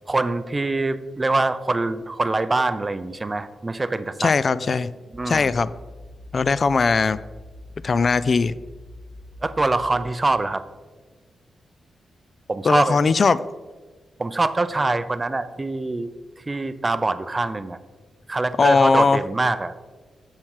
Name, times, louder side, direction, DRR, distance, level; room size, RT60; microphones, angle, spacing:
voice 1, 0.1-4.3 5.1-5.5 9.4-10.6 12.5-13.0 14.2-17.8 18.3-19.7, right 2 dB, 25° right, 13 dB, 0.5 m, -24 dB
voice 2, 4.2-4.9 5.3-5.7 6.3-7.2 7.8-8.5 12.6-13.4 18.6-19.2, left 4 dB, 45° left, 16 dB, 0.3 m, -19 dB
sound 1, 5.1-10.1, left 2 dB, 5° left, 1.2 m, -43 dB
7.1 x 6.6 x 4.6 m, 1.3 s
cardioid pair, 95°, 0 cm